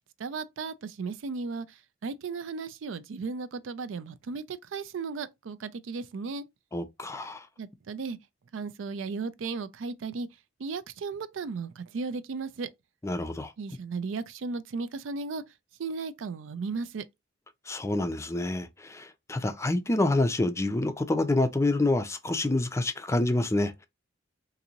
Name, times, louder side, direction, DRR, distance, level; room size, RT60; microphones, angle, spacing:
voice 1, 0.2-6.4 7.6-8.2 8.5-10.3 10.6-12.7 13.6-15.4 15.8-17.0, right 4 dB, 75° right, 0.4 m, -35 dB
voice 2, 6.7-7.5 13.0-13.5 17.7-23.9, left 2 dB, 15° left, 0.4 m, -27 dB
3.8 x 2.6 x 2.8 m
head